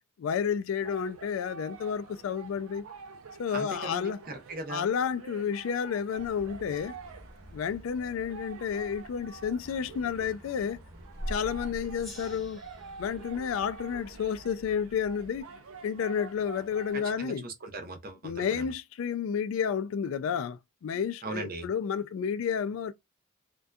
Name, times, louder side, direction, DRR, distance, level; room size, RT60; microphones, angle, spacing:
voice 1, 0.2-2.8 3.4-4.2 4.7-7.0 7.5-10.8 11.3-12.6 13.0-15.5 15.8-17.4 18.2-22.9, left 7 dB, 70° left, 0.3 m, -31 dB
sound 1, 0.8-17.3, right 5 dB, 80° right, 0.4 m, -48 dB
voice 2, 3.5-4.9 16.9-18.7 21.2-21.7, right 2 dB, 45° right, 0.7 m, -39 dB
sound 2, 6.1-15.4, equal, 15° right, 1.3 m, -46 dB
Gong, 12.0-15.1, left 2 dB, ahead, 0.6 m, -53 dB
2.6 x 2.2 x 2.2 m
head